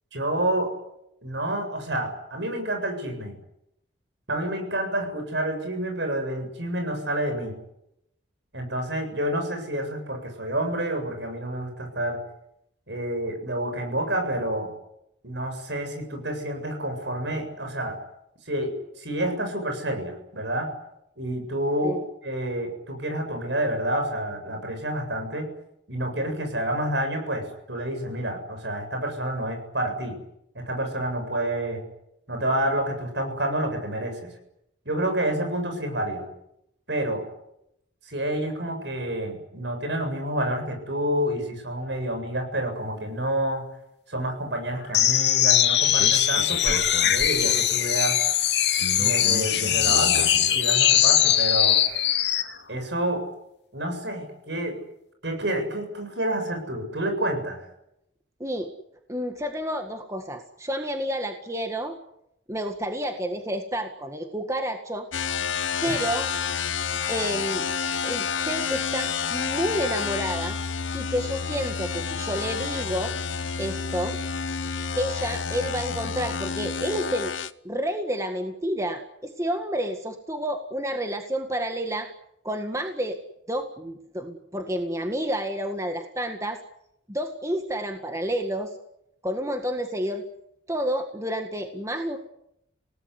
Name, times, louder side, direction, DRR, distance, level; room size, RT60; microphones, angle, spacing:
voice 1, 0.1-0.8 1.2-3.3 4.3-7.5 8.5-12.2 12.9-14.7 15.2-18.0 18.5-20.7 21.2-22.0 22.2-25.5 25.9-30.2 30.5-31.8 32.3-34.3 34.9-36.3 36.9-37.3 38.0-43.6 44.1-48.2 48.9-51.8 52.7-53.3 53.7-54.8 55.2-57.6 65.9-66.0, right 1 dB, 70° right, 6 dB, 7.8 m, -29 dB
sound 1, 44.9-52.5, left 10 dB, 60° left, 2.6 m, -21 dB
voice 2, 58.4-58.7 59.1-62.0 62.5-65.1 65.8-66.3 67.1-67.7 68.0-70.6 70.9-73.2 73.6-74.2 75.0-77.3 77.6-82.1 82.4-83.2 83.5-86.6 87.1-88.7 89.2-90.2 90.7-92.2, equal, 15° right, 5 dB, 1.9 m, -30 dB
sound 2, 65.1-77.5, left 6 dB, 90° left, 1.0 m, -29 dB
28.5 x 18.5 x 9.8 m, 0.81 s
head